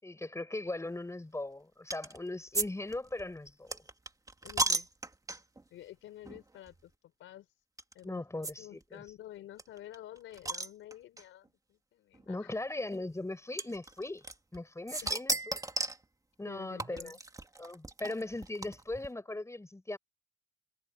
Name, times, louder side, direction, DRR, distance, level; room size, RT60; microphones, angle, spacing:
voice 1, 0.0-3.8 8.0-9.0 12.3-14.2 14.5-15.3 16.4-17.2 17.6-20.0, left 2 dB, 15° left, 7.7 m, -39 dB
sound 1, 1.9-2.2 2.5-2.7 2.9-5.6 6.2-6.4 6.7-6.8 7.8-7.9 8.4-8.5 8.8-8.9 9.1-9.2 9.6-11.2 12.1-12.2 13.6-14.6 14.9-16.0 16.8-19.1, right 2 dB, 15° right, 2.3 m, -35 dB
voice 2, 4.4-4.9 5.7-6.9 7.2-7.5 7.9-12.6 15.0-15.1 16.5-17.2, left 13 dB, 85° left, 5.2 m, -50 dB
cardioid pair, 90°, 20 cm